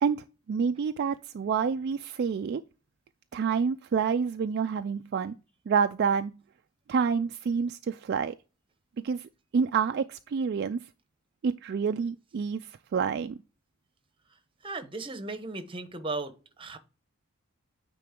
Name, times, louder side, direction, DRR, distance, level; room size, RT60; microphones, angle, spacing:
voice 1, 0.0-2.6 3.3-5.3 5.7-6.4 6.9-8.4 9.0-10.8 11.4-13.4, right 6 dB, 50° right, 0.3 m, -28 dB
voice 2, 14.6-16.8, right 3 dB, 25° right, 0.9 m, -36 dB
9.2 x 3.7 x 3.7 m
head